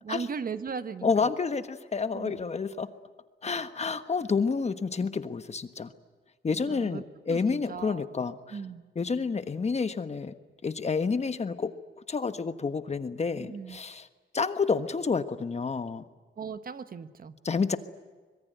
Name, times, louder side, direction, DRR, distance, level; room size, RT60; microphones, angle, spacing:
voice 1, 0.0-1.3 2.1-2.5 6.5-8.1 8.5-8.9 13.4-13.8 16.4-17.3, right 6 dB, 50° right, 11 dB, 1.3 m, -38 dB
voice 2, 1.0-2.9 3.4-5.9 6.4-8.6 8.9-10.3 10.6-11.7 12.1-14.1 14.3-16.0 17.4-17.8, left 5 dB, 35° left, 10 dB, 1.3 m, -29 dB
25.5 x 22.5 x 9.3 m, 1.4 s
wide cardioid pair, 120°, 19 cm